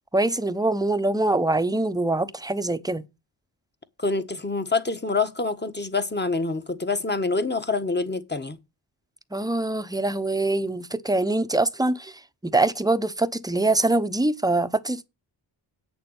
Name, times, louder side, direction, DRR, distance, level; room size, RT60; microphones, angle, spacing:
voice 1, 0.1-3.0 9.3-12.1 12.4-15.1, right 2 dB, 10° right, 1.0 m, -24 dB
voice 2, 4.0-8.6, left 3 dB, 20° left, 1.4 m, -26 dB
8.5 x 7.0 x 8.0 m
cardioid pair, 60°, 48 cm